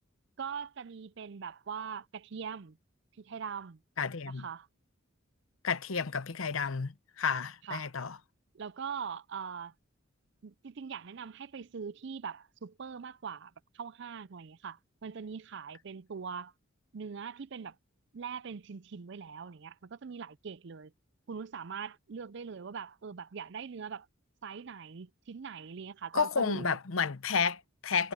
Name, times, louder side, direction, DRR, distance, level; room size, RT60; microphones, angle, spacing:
voice 1, 0.4-2.8 3.2-3.8 4.3-4.7 7.6-7.9 8.5-9.7 10.4-16.5 16.9-17.8 18.1-20.9 21.3-24.1 24.4-26.8, right 6 dB, 60° right, 0.5 m, -42 dB
voice 2, 4.0-4.5 5.6-8.2 26.1-28.1, left 5 dB, 85° left, 0.8 m, -31 dB
head